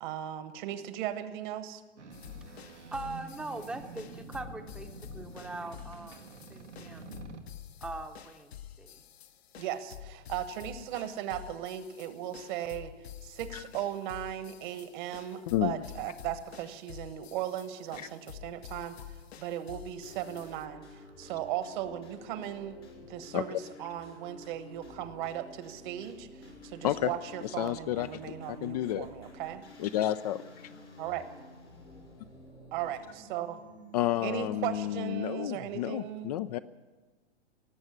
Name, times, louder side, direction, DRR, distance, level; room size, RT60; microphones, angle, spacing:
voice 1, 0.0-1.8 5.2-5.3 5.5-5.7 9.6-12.9 13.2-19.0 19.4-20.8 21.2-22.8 23.1-29.6 31.0-31.2 32.7-33.6 34.2-36.3, right 11 dB, 45° right, 12 dB, 1.3 m, -37 dB
sound 1, 2.0-7.4, right 4 dB, 90° right, 1.6 m, -48 dB
sound 2, 2.1-20.6, left 10 dB, 65° left, 1.1 m, -49 dB
voice 2, 2.5-7.2 7.8-9.0, right 2 dB, 5° right, 6 dB, 0.8 m, -42 dB
voice 3, 15.5-15.8 18.0-18.1 23.3-23.6 26.8-27.1 27.4-29.1 29.8-30.4 33.9-36.6, left 13 dB, 40° left, 12 dB, 0.4 m, -31 dB
sound 3, 20.0-35.1, left 2 dB, 80° left, 5.8 m, -51 dB
18.0 x 8.0 x 9.4 m, 1.3 s
figure-of-eight pair, 110°, 34 cm